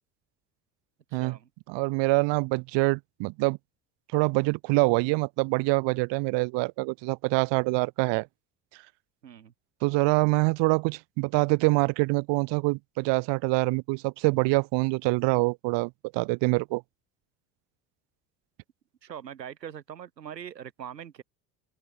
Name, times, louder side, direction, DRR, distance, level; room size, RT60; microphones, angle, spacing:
voice 1, 1.1-1.5 5.0-5.2 9.2-9.5 19.0-21.2, right 9 dB, 85° right, 5.5 m, -42 dB
voice 2, 1.7-3.6 4.1-8.3 9.8-16.8, right 26 dB, 60° right, 2.2 m, -25 dB
open air
hypercardioid pair, 70°, 49 cm